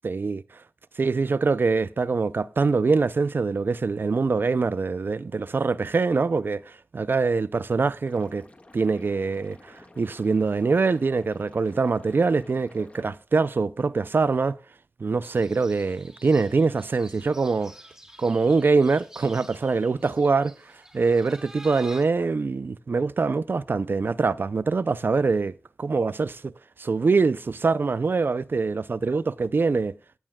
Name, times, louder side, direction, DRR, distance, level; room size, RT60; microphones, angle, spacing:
voice 1, 0.0-0.4 1.0-8.5 8.7-14.6 15.0-17.7 18.2-20.5 20.9-26.5 26.8-29.9, right 4 dB, 70° right, 0.5 m, -24 dB
Liquid, 8.1-13.1, left 2 dB, 35° left, 1.7 m, -52 dB
sound 1, 15.2-22.1, right 1 dB, 15° right, 2.2 m, -48 dB
16.5 x 9.8 x 2.3 m
wide cardioid pair, 55°, 4 cm